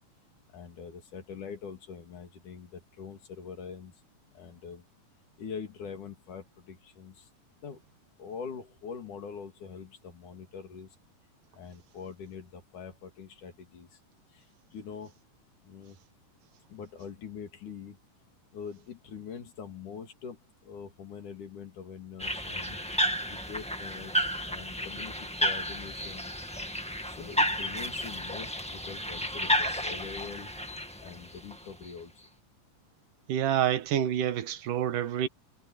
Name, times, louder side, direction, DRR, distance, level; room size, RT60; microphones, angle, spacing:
voice 1, 0.5-3.9 4.3-4.8 5.4-7.3 7.6-7.8 8.2-11.0 11.5-14.0 14.3-15.1 15.6-16.0 16.7-18.0 18.5-20.4 20.6-22.8 23.3-26.3 27.0-30.6 31.0-32.3, left 6 dB, 70° left, 4.2 m, -44 dB
sound 1, 22.2-31.9, equal, 5° left, 0.5 m, -32 dB
voice 2, 33.3-35.3, right 10 dB, 80° right, 2.8 m, -27 dB
omnidirectional pair, 3.7 m